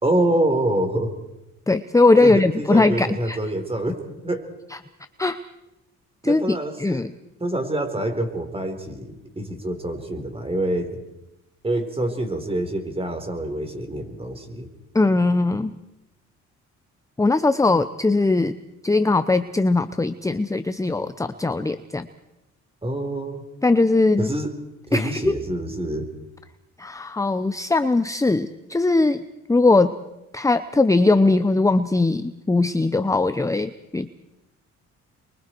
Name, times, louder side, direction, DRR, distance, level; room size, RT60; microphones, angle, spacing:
voice 1, 0.0-1.1 2.2-4.5 6.2-7.1 7.4-11.0 11.6-14.7 22.8-23.4 24.2-24.5 24.9-26.1, right 1 dB, 20° right, 6 dB, 4.1 m, -26 dB
voice 2, 1.7-3.4 5.2-5.4 6.2-7.1 14.9-15.8 17.2-18.5 18.8-22.1 23.6-24.3 24.9-25.3 26.8-29.2 29.5-30.0 30.3-34.1, left 3 dB, 10° left, 12 dB, 0.8 m, -20 dB
28.5 x 23.5 x 4.7 m, 0.92 s
cardioid pair, 90°, 30 cm